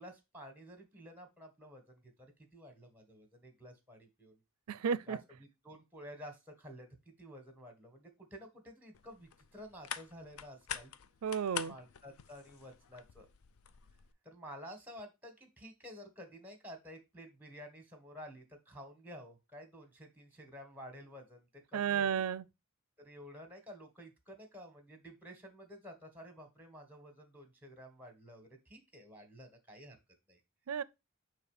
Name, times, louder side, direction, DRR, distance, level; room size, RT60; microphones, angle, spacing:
voice 1, 0.0-4.4 5.1-10.9 11.6-13.3 14.2-22.2 23.0-30.0 30.3-30.4, equal, 10° right, 1.3 m, -52 dB
voice 2, 4.7-5.2 11.2-11.7 21.7-22.4 30.7-30.8, right 7 dB, 85° right, 0.4 m, -32 dB
sound 1, 8.9-14.1, left 8 dB, 75° left, 0.5 m, -46 dB
6.4 x 3.2 x 4.8 m
head